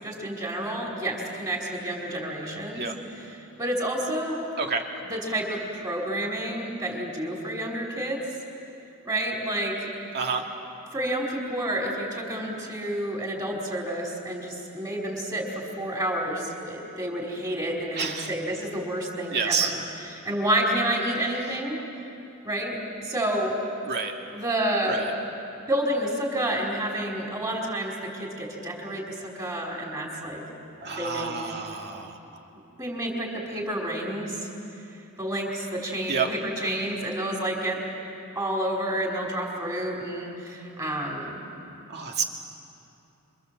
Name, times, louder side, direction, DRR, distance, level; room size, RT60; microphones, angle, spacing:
voice 1, 0.0-2.9 3.1-4.4 5.0-8.2 9.0-9.9 10.9-21.8 22.4-22.8 23.0-23.6 24.3-25.1 25.7-30.4 31.0-31.3 32.8-34.4 35.2-37.8 38.3-41.4, right 1 dB, 15° right, -2 dB, 4.8 m, -29 dB
voice 2, 18.0-18.3 19.3-19.7 23.9-24.1 24.9-25.1 30.8-32.1 36.1-36.3 41.9-42.2, right 5 dB, 50° right, 2 dB, 2.3 m, -28 dB
27.5 x 25.5 x 7.8 m, 2.8 s
head